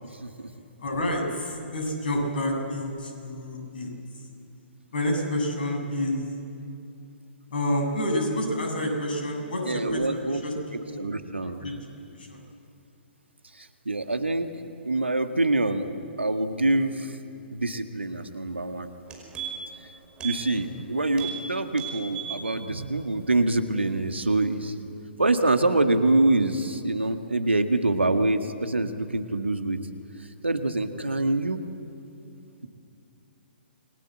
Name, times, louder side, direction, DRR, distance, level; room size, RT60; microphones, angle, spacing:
voice 1, 0.8-4.3 4.9-6.2 7.5-11.0 11.4-11.7 12.1-12.4 20.5-20.7, left 1 dB, 55° left, 1 dB, 7.7 m, -29 dB
voice 2, 9.7-10.4 11.0-11.6 13.9-14.5 14.9-15.9 16.2-17.2 17.5-18.9 20.2-24.7 25.2-29.8 30.4-31.6, right 2 dB, 80° right, 7 dB, 1.8 m, -25 dB
sound 1, 18.5-18.6 18.9-19.8 20.2-20.4 20.7-20.8 21.1-21.4 21.7-22.4 22.8-22.9, right 9 dB, 15° right, 5.4 m, -36 dB
28.5 x 21.5 x 7.9 m, 2.6 s
figure-of-eight pair, 125°, 6 cm